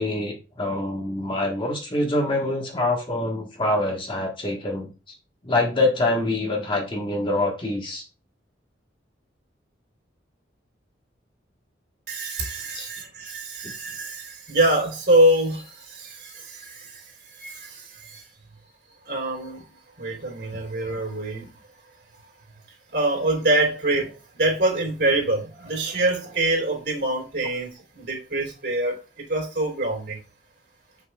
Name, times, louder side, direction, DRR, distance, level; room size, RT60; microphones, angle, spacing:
voice 1, 0.0-5.1 5.4-8.0 12.7-12.9 13.6-13.7, left 2 dB, 30° left, 1.3 m, -25 dB
voice 2, 12.1-18.2 19.1-19.6 20.0-21.5 22.9-30.2, right 1 dB, 60° right, 3.3 m, -25 dB
7.9 x 6.1 x 2.3 m
head